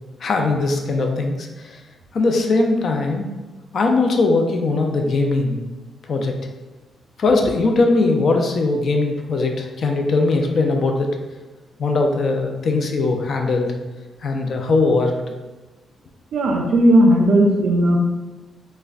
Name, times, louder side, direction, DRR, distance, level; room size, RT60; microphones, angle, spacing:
voice 1, 0.2-1.8 2.1-3.3 3.7-5.6 6.1-6.4 7.2-11.1 11.8-13.7 14.2-15.3, left 3 dB, 50° left, 3 dB, 0.3 m, -20 dB
voice 2, 16.3-18.0, right 1 dB, 75° right, 1 dB, 0.4 m, -15 dB
3.4 x 2.1 x 2.4 m, 1.2 s
cardioid pair, 135°, 0 cm